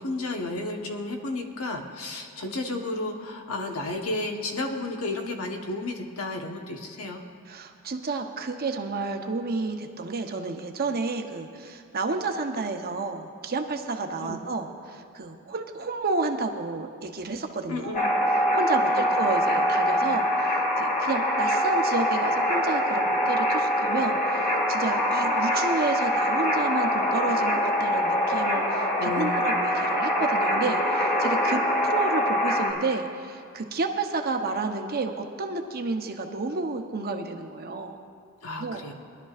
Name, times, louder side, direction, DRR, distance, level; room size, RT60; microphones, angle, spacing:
voice 1, 0.0-7.2 14.2-14.4 17.7-18.1 18.8-19.1 29.0-29.6 38.4-38.9, left 2 dB, 75° left, 3 dB, 1.2 m, -32 dB
voice 2, 7.5-18.0 18.5-38.0 38.6-38.8, right 3 dB, 45° right, 4 dB, 0.8 m, -30 dB
sound 1, 17.9-32.7, equal, 40° left, 2.1 m, -24 dB
22.0 x 11.5 x 2.5 m, 2.4 s
head